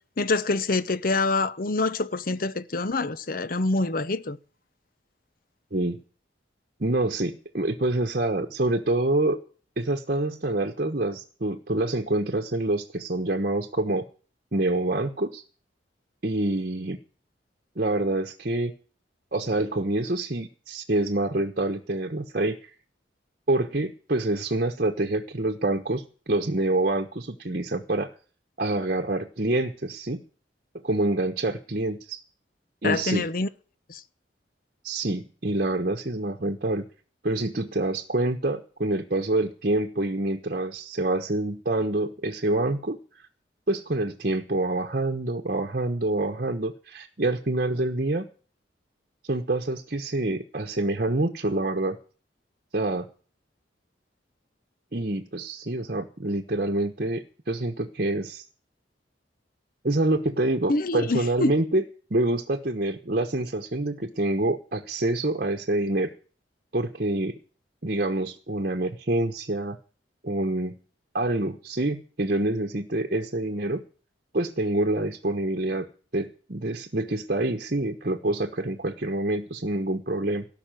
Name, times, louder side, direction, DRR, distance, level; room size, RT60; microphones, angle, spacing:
voice 1, 0.2-4.4 32.8-33.5 33.9-34.0 60.7-61.5, left 3 dB, 50° left, 0.8 m, -26 dB
voice 2, 6.8-9.4 9.8-14.0 14.5-15.4 16.2-17.0 17.8-18.7 19.3-22.7 23.5-28.1 28.6-30.2 30.8-32.2 32.8-33.3 34.8-36.8 37.2-43.0 43.7-48.3 49.3-52.0 52.7-53.1 54.9-58.4 59.8-61.8 62.1-66.1 66.7-67.4 67.8-69.8 70.2-70.7 71.1-73.8 74.3-75.9 76.1-80.5, right 2 dB, 50° right, 1.1 m, -26 dB
17.5 x 6.0 x 9.1 m
head